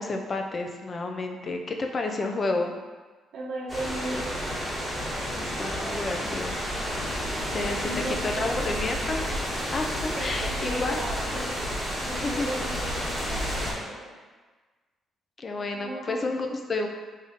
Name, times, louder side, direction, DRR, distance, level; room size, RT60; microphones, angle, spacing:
voice 1, 0.0-2.7 5.4-6.6 7.5-7.8 8.2-9.2 9.7-11.0 12.2-12.7 15.4-16.9, left 2 dB, 35° left, 4 dB, 0.4 m, -30 dB
voice 2, 2.1-2.5 3.3-4.5 5.8-6.5 7.2-8.6 10.1-11.5 12.0-14.2 15.7-16.2, right 1 dB, 70° right, -4 dB, 0.9 m, -37 dB
sound 1, 3.7-13.7, equal, 10° right, 1.4 m, -31 dB
3.6 x 2.6 x 3.5 m, 1.3 s
cardioid pair, 90°, 0 cm